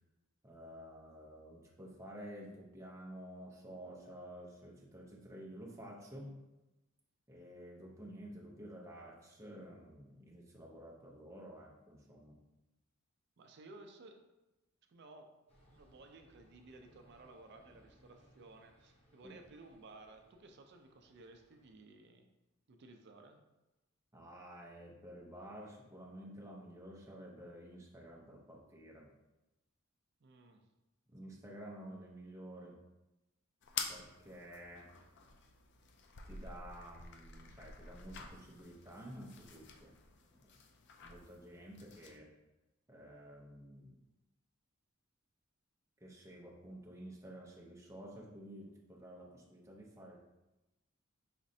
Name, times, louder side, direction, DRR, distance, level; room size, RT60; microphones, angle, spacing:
voice 1, 0.4-6.4 7.3-12.4 19.2-19.4 24.1-29.1 31.1-32.8 33.9-34.8 36.2-39.9 40.3-40.4 41.0-42.3 42.9-44.0 46.0-50.2, equal, 15° right, -2 dB, 0.6 m, -51 dB
voice 2, 13.4-14.2 14.9-15.3 15.7-22.3 22.7-23.4 30.2-30.7, right 2 dB, 55° right, 5 dB, 0.4 m, -57 dB
sound 1, 15.5-21.7, equal, 30° left, 0.8 m, -68 dB
sound 2, 33.6-42.2, left 5 dB, 55° left, 0.4 m, -48 dB
5.0 x 3.1 x 2.7 m, 1.0 s
head